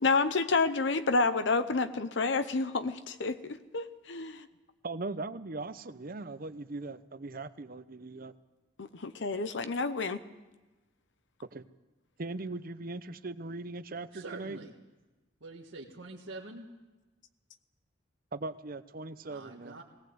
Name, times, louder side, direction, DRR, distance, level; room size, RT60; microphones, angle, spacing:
voice 1, 0.0-4.5 8.8-10.2, left 3 dB, 65° left, 11 dB, 0.8 m, -29 dB
voice 2, 4.8-8.3 11.5-11.7 12.2-14.6 18.3-19.8, right 3 dB, 50° right, 13 dB, 0.8 m, -39 dB
voice 3, 14.1-14.7 15.4-16.7 19.2-19.8, right 2 dB, 80° right, -4 dB, 1.8 m, -45 dB
19.0 x 18.5 x 7.9 m, 1.2 s
head